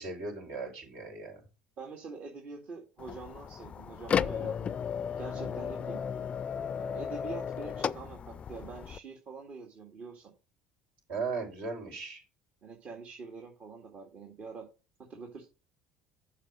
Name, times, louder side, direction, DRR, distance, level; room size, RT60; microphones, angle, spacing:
voice 1, 0.0-1.4 5.3-5.6 11.1-12.2, right 4 dB, 75° right, 0 dB, 5.9 m, -37 dB
voice 2, 1.8-4.8 5.2-6.0 6.7-10.3 12.6-14.7 15.1-15.4, right 4 dB, 50° right, 1 dB, 2.1 m, -45 dB
sound 1, 3.0-9.0, left 7 dB, 40° left, 0.4 m, -34 dB
7.4 x 5.0 x 6.1 m, 0.32 s
supercardioid pair, 80°, 3 cm